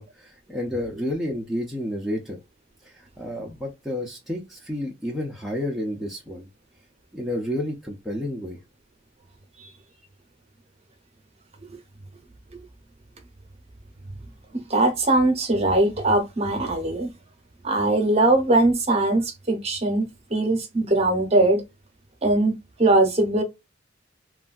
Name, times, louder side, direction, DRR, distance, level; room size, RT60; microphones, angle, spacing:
voice 1, 0.0-2.4 2.8-6.5 7.1-8.6, left 1 dB, ahead, 0.4 m, -30 dB
voice 2, 14.7-17.1 17.6-20.1 20.3-21.6 22.2-23.4, right 2 dB, 30° right, 0.7 m, -21 dB
3.2 x 2.2 x 2.4 m
head